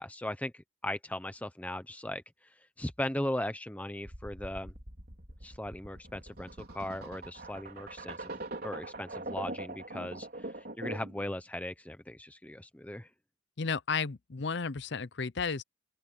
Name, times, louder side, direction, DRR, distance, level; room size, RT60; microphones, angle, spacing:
voice 1, 0.0-4.7 5.4-13.1, left 1 dB, 5° left, 0.9 m, -38 dB
sound 1, 4.0-11.2, right 2 dB, 50° right, 4.1 m, -43 dB
voice 2, 13.6-15.6, left 5 dB, 55° left, 0.6 m, -33 dB
open air
head